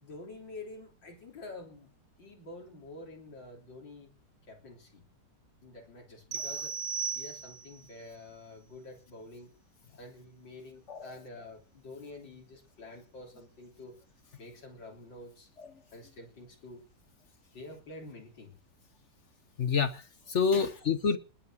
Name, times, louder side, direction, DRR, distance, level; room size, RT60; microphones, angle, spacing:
voice 1, 0.0-1.9 2.2-4.1 4.5-5.0 5.6-6.7 7.1-9.5 10.0-14.0 14.4-15.5 15.9-16.8 17.5-18.6 20.5-20.9, left 2 dB, 90° left, 4.1 m, -48 dB
sound 1, 6.3-7.8, right 6 dB, 50° right, 0.7 m, -36 dB
voice 2, 19.6-21.2, left 6 dB, 50° left, 1.0 m, -28 dB
20.5 x 9.0 x 6.3 m
omnidirectional pair, 1.9 m